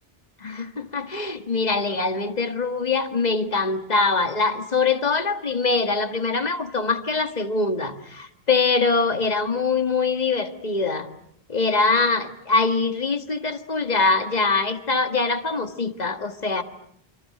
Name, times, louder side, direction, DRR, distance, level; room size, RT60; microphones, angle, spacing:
voice 1, 0.4-11.1 11.5-16.6, left 4 dB, 45° left, 9 dB, 1.8 m, -23 dB
28.5 x 26.5 x 7.8 m, 0.70 s
omnidirectional pair, 1.0 m